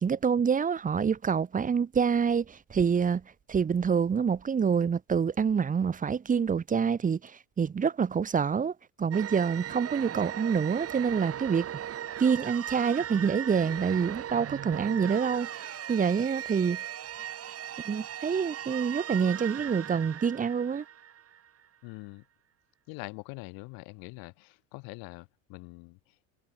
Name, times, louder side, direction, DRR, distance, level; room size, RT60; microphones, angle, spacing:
voice 1, 0.0-3.2 3.5-11.7 12.2-16.8 17.8-20.8, right 6 dB, 20° right, 1.5 m, -27 dB
sound 1, 9.1-21.6, right 10 dB, 35° right, 7.0 m, -38 dB
voice 2, 21.8-22.2 22.9-26.0, left 31 dB, 60° left, 6.9 m, -44 dB
supercardioid pair, 110°, 40 cm